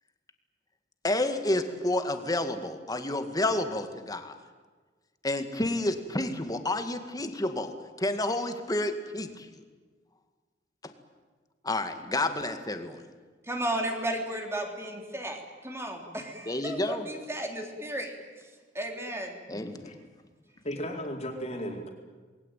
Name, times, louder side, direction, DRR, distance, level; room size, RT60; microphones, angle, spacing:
voice 1, 1.0-4.4 5.2-9.6 11.6-13.0 16.5-17.1 19.5-20.0, left 1 dB, 20° left, 8 dB, 2.1 m, -30 dB
voice 2, 13.4-18.5 18.7-19.4, right 1 dB, 15° right, 3 dB, 3.7 m, -34 dB
voice 3, 20.6-21.9, equal, 35° left, 2 dB, 4.3 m, -35 dB
28.0 x 21.5 x 9.2 m, 1.4 s
head